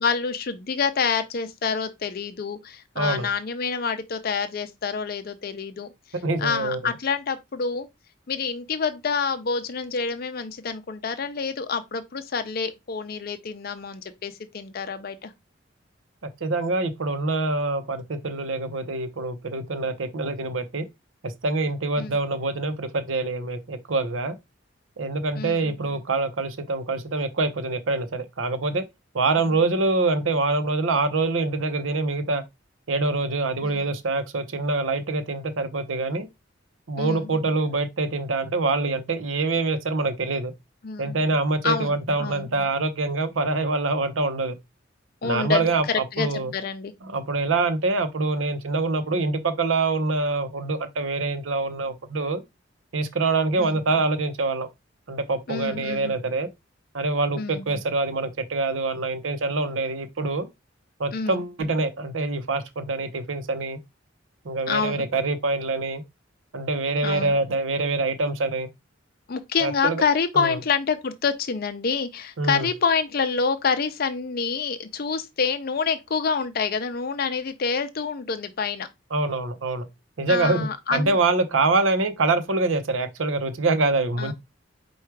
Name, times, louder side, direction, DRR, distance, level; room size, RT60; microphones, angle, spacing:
voice 1, 0.0-5.9 6.4-7.9 8.3-15.3 22.0-22.2 25.4-25.8 29.4-29.5 33.6-33.8 37.0-37.3 40.8-41.2 41.6-42.5 45.2-45.6 46.1-46.9 53.6-53.8 55.5-56.2 57.4-57.6 61.1-61.4 64.7-65.0 67.0-67.3 69.3-78.9 80.3-81.2 84.2-84.3, left 5 dB, 50° left, 0.5 m, -27 dB
voice 2, 3.0-3.3 6.2-6.8 16.4-20.9 21.2-24.4 25.0-28.8 29.1-32.4 32.9-36.3 36.9-40.5 41.0-44.5 45.2-46.5 47.0-52.4 52.9-54.7 55.1-56.5 56.9-60.5 61.0-63.8 64.4-66.0 66.5-68.7 69.6-70.0 70.3-70.6 72.4-72.7 79.1-79.9 80.2-84.3, right 3 dB, 85° right, 0.7 m, -25 dB
4.6 x 2.3 x 4.5 m
head